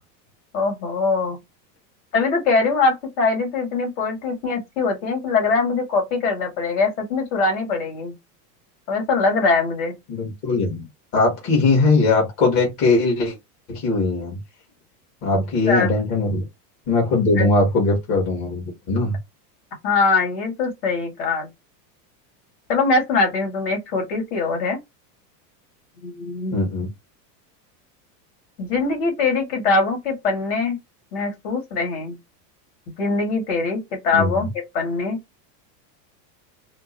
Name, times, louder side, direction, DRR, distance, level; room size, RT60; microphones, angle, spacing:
voice 1, 0.5-1.4 2.1-8.1 8.9-10.0 15.3-15.9 17.4-17.5 19.8-21.5 22.7-24.8 26.0-26.6 28.6-30.8 31.1-32.2 33.0-34.5 34.7-35.2, left 3 dB, 70° left, 2.2 m, -22 dB
voice 2, 10.1-10.8 11.1-13.3 13.7-14.4 15.2-16.4 16.9-19.2 26.5-26.9 34.1-34.4, left 3 dB, 45° left, 1.7 m, -20 dB
4.4 x 2.1 x 2.9 m
supercardioid pair, 150°, 49 cm